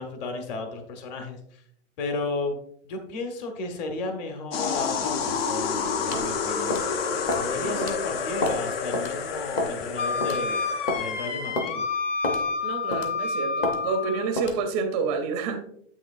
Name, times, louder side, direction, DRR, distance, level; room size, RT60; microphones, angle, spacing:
voice 1, 0.0-1.6 2.0-2.6 2.8-6.8 7.4-10.6 10.9-11.8, left 3 dB, 35° left, 4 dB, 1.2 m, -33 dB
sound 1, 4.5-11.4, left 5 dB, 50° left, 0.9 m, -29 dB
sound 2, 6.1-6.3 6.7-6.9 7.3-7.5 7.8-7.9 8.4-8.6 8.9-9.1 9.6-9.8 10.2-10.4 10.9-11.0 11.6-11.7 12.2-12.4 12.9-13.2 13.6-13.8 14.4-14.6, left 2 dB, 20° left, 0.6 m, -28 dB
voice 2, 7.6-7.9 12.6-15.6, right 5 dB, 20° right, 5 dB, 0.5 m, -29 dB
Wind instrument woodwind instrument, 10.0-14.3, left 4 dB, 80° left, 1.2 m, -29 dB
7.7 x 6.1 x 2.5 m, 0.68 s
hypercardioid pair, 155°, 36 cm